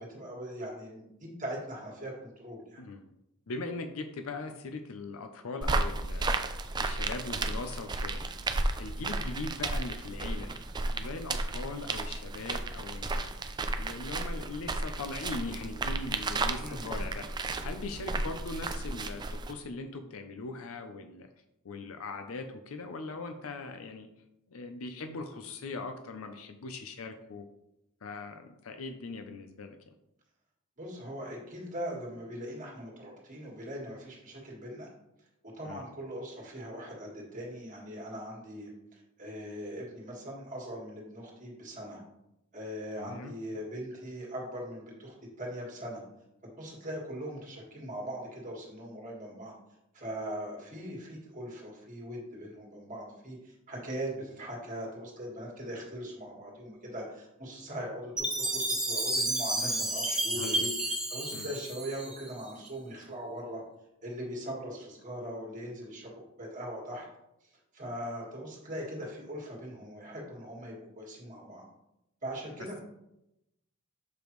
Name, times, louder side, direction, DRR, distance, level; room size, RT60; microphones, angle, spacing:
voice 1, 0.0-2.8 9.0-9.2 16.6-16.9 30.8-34.9 35.5-42.0 42.5-46.0 46.4-49.5 49.9-63.6 64.0-67.1 67.7-71.6 72.2-72.8, equal, 35° right, -3 dB, 1.7 m, -40 dB
voice 2, 3.5-6.4 6.8-8.2 8.8-10.6 10.9-13.3 13.8-17.3 17.6-21.3 21.6-24.1 24.5-27.4 28.0-29.9 35.6-35.8 43.0-43.3 59.6-59.8 60.3-60.7 61.3-61.5, left 3 dB, 75° left, 6 dB, 0.6 m, -40 dB
sound 1, 5.6-19.5, right 2 dB, 20° right, 0.4 m, -33 dB
Chime, 58.2-62.4, right 1 dB, 5° right, 1.0 m, -31 dB
6.9 x 5.0 x 3.1 m, 0.86 s
head